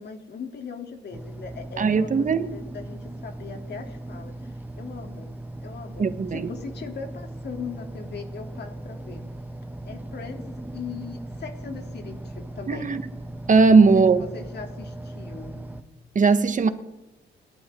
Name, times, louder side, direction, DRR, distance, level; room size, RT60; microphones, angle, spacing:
voice 1, 0.0-5.3 5.6-9.2 9.8-12.9 13.7-14.0 14.3-15.6, left 5 dB, 55° left, 3.5 m, -39 dB
sound 1, 1.1-15.8, right 1 dB, 10° right, 1.3 m, -38 dB
voice 2, 1.8-2.5 6.0-6.5 12.7-13.0 13.5-14.2 16.1-16.7, right 4 dB, 40° right, 1.5 m, -18 dB
28.0 x 12.5 x 3.9 m
cardioid pair, 90°, 20 cm